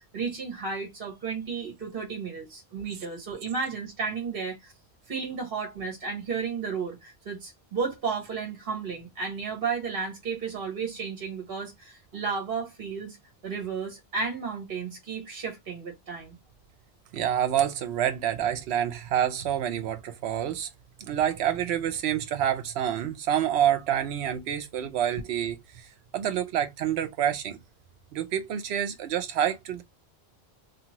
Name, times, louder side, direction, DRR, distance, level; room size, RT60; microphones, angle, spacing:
voice 1, 0.1-4.7 5.1-13.2 13.4-16.3, right 5 dB, 60° right, 1.3 m, -33 dB
voice 2, 17.1-20.7 21.0-25.6 26.1-27.6 28.1-29.8, right 10 dB, 80° right, 0.9 m, -27 dB
2.7 x 2.5 x 2.8 m
omnidirectional pair, 1.1 m